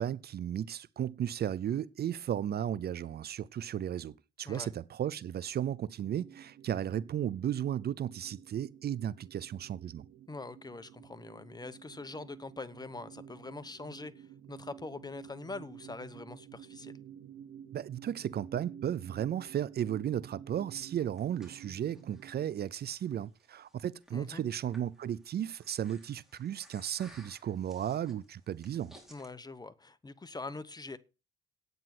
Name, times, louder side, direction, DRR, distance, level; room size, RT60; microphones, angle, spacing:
voice 1, 0.0-10.1 17.7-28.9, right 10 dB, 55° right, 0.6 m, -35 dB
sound 1, 6.0-22.6, right 9 dB, 80° right, 1.2 m, -52 dB
voice 2, 10.3-17.0 24.1-24.4 29.1-31.0, left 3 dB, 20° left, 1.0 m, -43 dB
Breathing, 20.8-29.3, right 1 dB, ahead, 4.0 m, -60 dB
9.5 x 9.0 x 6.1 m
cardioid pair, 90°, 20 cm